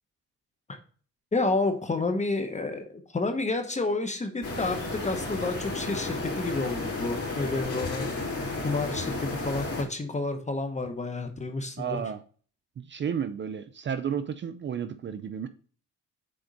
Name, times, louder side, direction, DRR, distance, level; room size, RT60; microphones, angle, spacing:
voice 1, 1.3-8.1 8.6-12.0, left 3 dB, 25° left, 0.9 m, -30 dB
sound 1, 4.4-9.8, left 3 dB, 55° left, 3.3 m, -33 dB
voice 2, 11.8-12.2 12.8-15.5, right 8 dB, 40° right, 0.5 m, -32 dB
6.5 x 4.4 x 4.0 m
cardioid pair, 90°, 30 cm